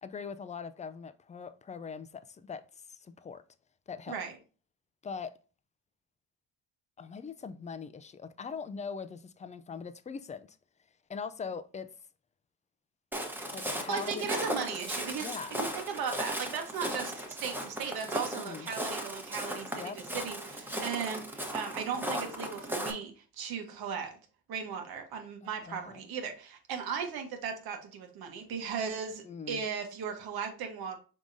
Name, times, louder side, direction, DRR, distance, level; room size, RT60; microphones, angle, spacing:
voice 1, 0.0-3.4 3.9-4.2 5.0-5.3 7.0-10.6 11.1-11.9 13.5-14.2 15.2-15.6 18.3-18.7 19.7-20.1 25.4-26.0 29.2-29.6, left 6 dB, 20° left, 0.3 m, -41 dB
Walk footsteps, 13.1-22.9, equal, 5° right, 1.0 m, -36 dB
voice 2, 13.6-24.2 24.5-31.0, right 6 dB, 75° right, 1.1 m, -37 dB
4.8 x 3.6 x 2.6 m
cardioid pair, 80°, 38 cm